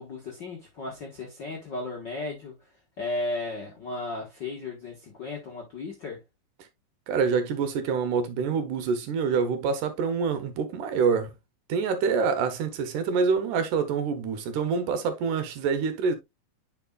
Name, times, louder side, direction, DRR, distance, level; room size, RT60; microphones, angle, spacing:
voice 1, 0.0-2.5 3.0-6.2, left 2 dB, 50° left, 1.4 m, -35 dB
voice 2, 7.1-11.3 11.7-16.2, right 5 dB, 70° right, 2.3 m, -26 dB
9.6 x 5.3 x 2.3 m
omnidirectional pair, 4.0 m